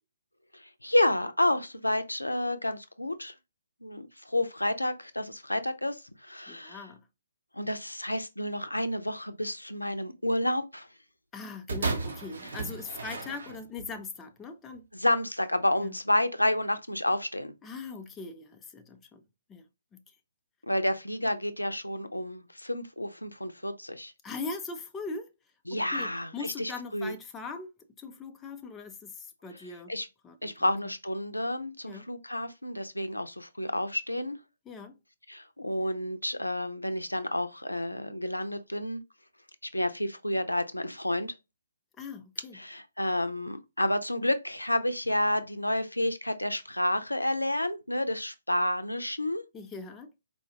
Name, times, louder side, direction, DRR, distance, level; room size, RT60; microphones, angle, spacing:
voice 1, 0.5-3.3 3.8-6.8 7.5-10.9 14.9-17.5 20.6-24.1 25.7-27.1 29.9-30.1 30.4-34.4 35.3-39.0 39.7-41.3 42.5-49.4, left 1 dB, 85° left, 0.5 m, -30 dB
voice 2, 6.5-7.0 11.3-14.9 15.8-16.0 17.6-19.2 19.5-19.7 19.9-20.2 24.2-25.3 25.7-27.7 28.0-29.9 30.2-30.7 31.8-32.1 34.7-34.9 42.0-42.6 49.5-50.1, left 4 dB, 10° left, 0.4 m, -40 dB
sound 1, 11.7-13.9 14.7-14.8, right 3 dB, 60° right, 0.9 m, -34 dB
4.2 x 2.3 x 2.8 m
figure-of-eight pair, 135°, 0 cm